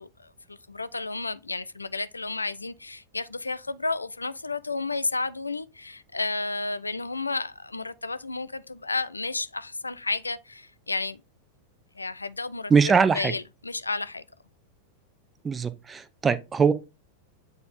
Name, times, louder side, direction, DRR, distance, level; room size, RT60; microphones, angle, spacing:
voice 1, 0.0-11.2 11.9-14.2, left 3 dB, 80° left, 0.4 m, -32 dB
voice 2, 12.7-13.3 15.4-16.7, right 5 dB, 15° right, 0.7 m, -21 dB
8.2 x 4.4 x 3.5 m
figure-of-eight pair, 90°, 0 cm